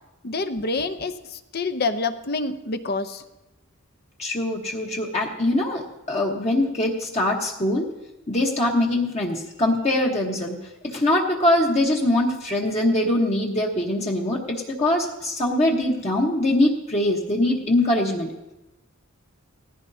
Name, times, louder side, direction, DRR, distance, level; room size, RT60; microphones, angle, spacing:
voice 1, 0.2-3.2, left 3 dB, 45° left, 10 dB, 0.7 m, -27 dB
voice 2, 4.2-7.9 8.3-10.6 10.8-18.3, left 1 dB, 30° left, -1 dB, 1.2 m, -23 dB
18.5 x 15.0 x 2.8 m, 0.97 s
head